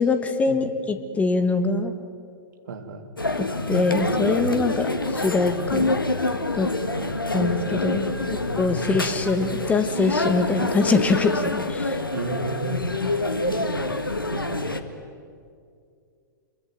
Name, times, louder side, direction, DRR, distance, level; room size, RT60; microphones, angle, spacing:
voice 1, 0.0-1.9 3.3-5.9 6.6-6.7 7.3-12.0, left 3 dB, 10° left, 9 dB, 1.6 m, -23 dB
voice 2, 2.7-3.1 6.8-7.3 8.3-8.4 8.7-8.8 12.1-12.8 13.5-13.9 14.3-14.7, right 4 dB, 60° right, 5 dB, 3.2 m, -34 dB
sound 1, 3.2-14.8, left 2 dB, 80° left, 1.7 m, -26 dB
26.0 x 22.5 x 9.3 m, 2.3 s
figure-of-eight pair, 105°, 11 cm